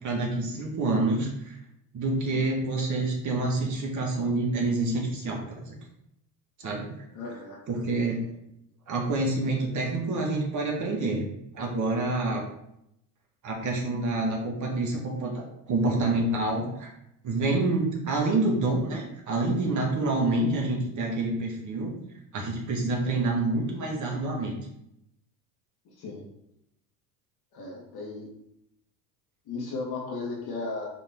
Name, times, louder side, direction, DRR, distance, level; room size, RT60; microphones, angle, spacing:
voice 1, 0.0-1.6 1.9-5.8 6.6-6.9 7.7-8.2 8.9-11.3 11.5-12.4 13.4-16.9 17.2-21.9 22.3-24.6, right 2 dB, 40° right, -1 dB, 2.0 m, -27 dB
voice 2, 7.1-7.6 8.1-8.3 26.0-26.3 27.5-28.3 29.5-30.9, left 3 dB, 50° left, -2 dB, 2.4 m, -35 dB
6.4 x 3.8 x 4.6 m, 0.79 s
supercardioid pair, 95°, 47 cm